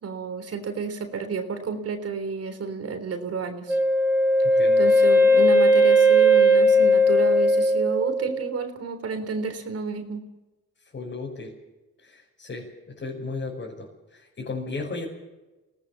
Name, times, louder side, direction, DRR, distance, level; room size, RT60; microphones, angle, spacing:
voice 1, 0.0-3.8 4.8-10.2, right 5 dB, 55° right, 7 dB, 3.6 m, -31 dB
Wind instrument woodwind instrument, 3.7-8.5, equal, 5° right, 7.2 m, -18 dB
voice 2, 4.4-4.9 10.9-11.6 12.0-15.1, left 3 dB, 40° left, -4 dB, 6.2 m, -35 dB
23.5 x 18.0 x 7.5 m, 1.1 s
cardioid pair, 90°, 30 cm